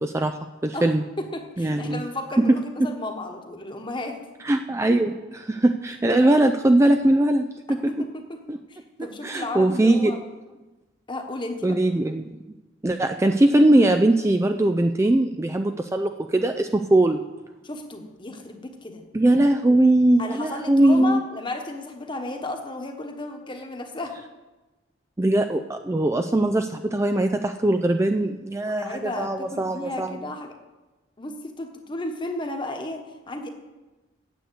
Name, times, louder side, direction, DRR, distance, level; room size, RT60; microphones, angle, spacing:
voice 1, 0.0-1.0 1.6-2.0 2.4-2.5 4.4-8.1 8.5-8.6 9.2-10.1 11.6-12.3 12.8-17.2 19.1-21.2 25.2-30.2, right 1 dB, 15° right, 7 dB, 0.4 m, -21 dB
voice 2, 1.2-4.2 6.1-6.3 7.9-8.4 8.7-10.2 11.1-11.8 17.6-19.0 20.2-24.2 28.6-30.5 31.2-33.5, left 2 dB, 25° left, 4 dB, 1.3 m, -33 dB
9.3 x 8.2 x 8.0 m, 1.1 s
head